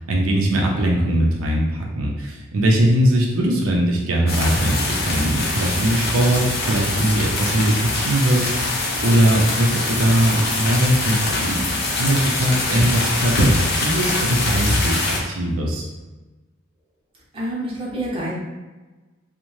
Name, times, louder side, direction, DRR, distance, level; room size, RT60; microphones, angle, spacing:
voice 1, 0.0-11.7 12.0-15.9, right 1 dB, 90° right, -1 dB, 0.5 m, -20 dB
sound 1, 4.3-15.2, left 2 dB, 50° left, 0.5 m, -23 dB
voice 2, 17.3-18.3, right 1 dB, 25° right, -6 dB, 0.7 m, -27 dB
2.6 x 2.1 x 3.0 m, 1.2 s
head